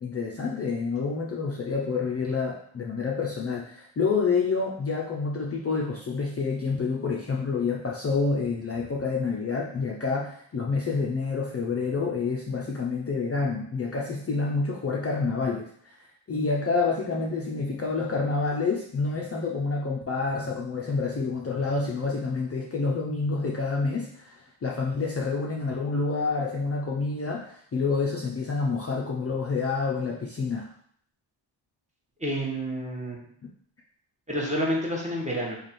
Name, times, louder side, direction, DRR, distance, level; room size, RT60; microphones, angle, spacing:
voice 1, 0.0-15.7 16.3-30.7 33.4-33.5, left 4 dB, 30° left, -2 dB, 0.5 m, -28 dB
voice 2, 32.2-33.2 34.3-35.6, equal, 15° right, -2 dB, 1.0 m, -29 dB
3.3 x 2.4 x 4.1 m, 0.62 s
cardioid pair, 85°, 48 cm